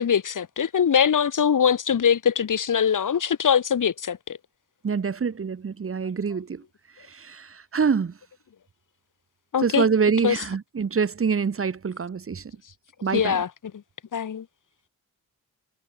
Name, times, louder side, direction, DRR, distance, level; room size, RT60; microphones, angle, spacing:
voice 1, 0.0-4.4 9.5-9.9 10.2-10.4 13.1-13.5 14.1-14.5, left 7 dB, 75° left, 2.1 m, -22 dB
voice 2, 4.8-6.6 7.1-8.1 9.6-12.5 13.0-13.4, right 6 dB, 45° right, 1.3 m, -25 dB
wide cardioid pair, 135°, 32 cm